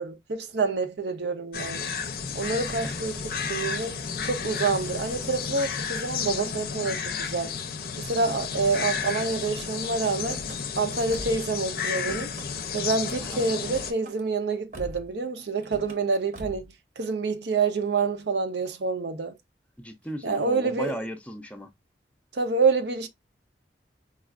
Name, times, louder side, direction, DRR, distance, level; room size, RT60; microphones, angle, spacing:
voice 1, 0.0-1.9 2.3-4.0 4.2-7.6 8.0-10.4 10.8-12.3 12.7-19.4 20.2-21.0 22.3-23.1, right 4 dB, 75° right, 0.7 m, -27 dB
sound 1, 1.5-13.9, left 6 dB, 55° left, 0.5 m, -32 dB
Car / Slam, 10.1-10.6 11.1-11.5 11.8-12.5 13.1-13.3 13.7-14.2 14.7-15.1 15.6-16.0 16.3-16.7, equal, 45° right, 0.8 m, -42 dB
voice 2, 19.8-21.7, equal, 10° left, 0.5 m, -36 dB
4.7 x 2.4 x 2.3 m
head